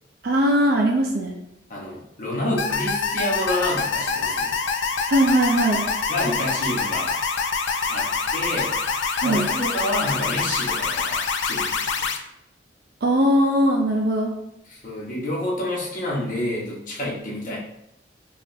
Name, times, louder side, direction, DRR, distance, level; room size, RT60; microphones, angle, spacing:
voice 1, 0.2-1.4 5.1-5.9 9.2-9.5 13.0-14.3, right 1 dB, 55° right, 1 dB, 0.4 m, -20 dB
voice 2, 1.7-4.5 6.1-7.1 7.9-8.8 9.2-12.1 14.7-17.6, left 1 dB, 45° left, -4 dB, 1.0 m, -28 dB
sound 1, 2.6-12.2, left 5 dB, 80° left, 0.4 m, -25 dB
5.2 x 2.4 x 2.6 m, 0.81 s
head